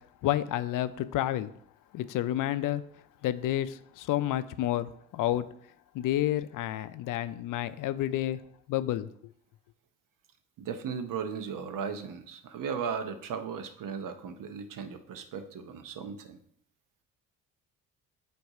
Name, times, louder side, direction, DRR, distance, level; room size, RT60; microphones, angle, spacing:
voice 1, 0.2-1.5 1.9-2.8 3.2-5.4 5.9-8.4 8.7-9.1, left 13 dB, 60° left, 13 dB, 0.5 m, -30 dB
voice 2, 10.6-16.4, right 6 dB, 60° right, 8 dB, 0.9 m, -36 dB
7.7 x 2.7 x 4.8 m, 0.66 s
supercardioid pair, 60°, 36 cm